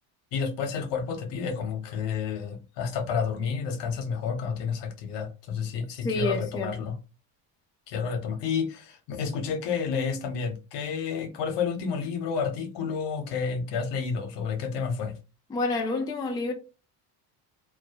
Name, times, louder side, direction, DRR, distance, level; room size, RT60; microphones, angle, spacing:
voice 1, 0.3-7.0 7.9-15.1, left 6 dB, 65° left, 0.8 m, -30 dB
voice 2, 6.0-6.7 15.5-16.5, left 2 dB, 10° left, 0.3 m, -28 dB
2.2 x 2.0 x 2.7 m
supercardioid pair, 85°, 45 cm